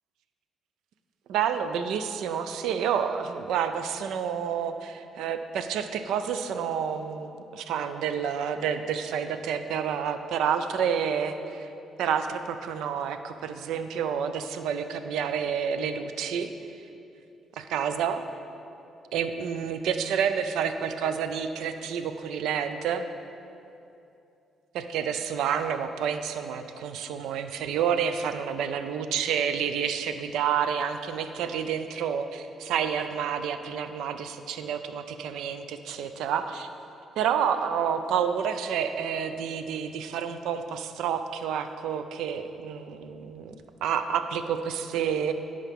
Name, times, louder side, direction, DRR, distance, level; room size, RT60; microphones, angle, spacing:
voice 1, 1.3-11.7 12.0-16.5 17.6-18.2 19.1-23.0 24.7-36.7 37.2-43.5 43.8-45.3, right 7 dB, 85° right, 9 dB, 0.4 m, -29 dB
9.9 x 4.9 x 3.5 m, 2.7 s
cardioid pair, 90°, 0 cm